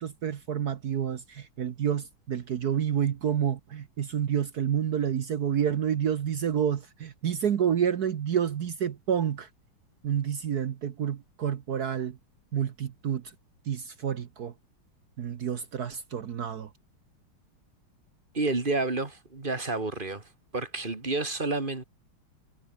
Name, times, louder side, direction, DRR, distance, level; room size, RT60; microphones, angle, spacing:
voice 1, 0.0-9.5 10.0-12.2 12.5-13.2 13.7-14.5 15.2-16.7, right 9 dB, 55° right, 1.4 m, -29 dB
voice 2, 18.3-20.2 20.5-21.8, right 3 dB, 25° right, 2.5 m, -29 dB
omnidirectional pair, 2.3 m